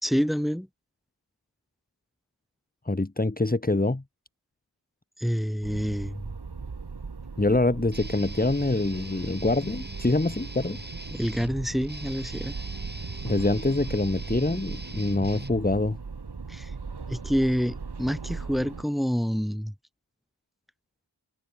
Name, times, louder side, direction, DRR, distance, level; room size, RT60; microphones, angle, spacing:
voice 1, 0.0-0.7 5.2-6.3 11.1-12.6 16.5-16.7 17.1-19.7, equal, ahead, 2.5 m, -27 dB
voice 2, 2.8-4.0 7.4-10.8 13.2-16.0, left 2 dB, 20° left, 1.3 m, -25 dB
sound 1, 5.6-18.8, right 4 dB, 60° right, 1.5 m, -38 dB
Guitar, 7.9-15.9, right 1 dB, 20° right, 5.2 m, -42 dB
wide cardioid pair, 40°, 45 cm